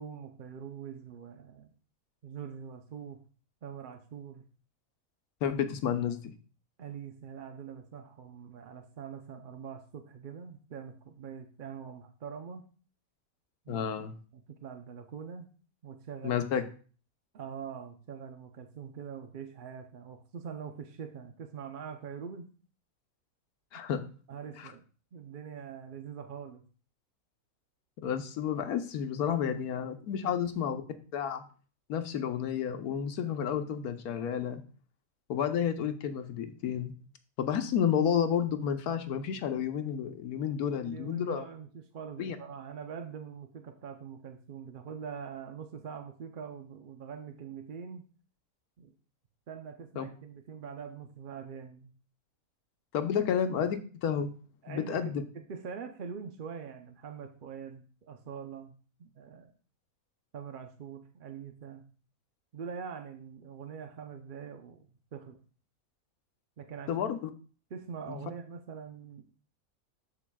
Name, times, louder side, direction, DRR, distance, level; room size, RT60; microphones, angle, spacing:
voice 1, 0.0-1.7 2.2-3.2 3.6-4.4 6.8-12.6 13.7-13.8 14.3-15.5 15.8-16.4 17.3-22.5 24.3-24.8 25.1-26.6 29.3-29.5 30.1-30.4 40.8-48.0 48.8-48.9 49.5-51.9 54.6-58.7 59.0-59.5 60.3-61.8 62.5-64.9 65.1-65.4 66.6-66.9 67.7-69.2, right 7 dB, 55° right, 6 dB, 0.6 m, -43 dB
voice 2, 5.4-6.2 13.7-14.1 16.2-16.6 23.7-24.0 24.6-24.7 28.0-30.8 31.1-31.4 31.9-34.6 35.3-36.9 37.4-41.4 42.2-42.4 50.0-50.1 52.9-54.3 54.7-55.2 66.9-67.2 68.1-68.2, left 8 dB, 85° left, 8 dB, 1.3 m, -31 dB
13.0 x 5.0 x 2.2 m, 0.39 s
omnidirectional pair, 1.5 m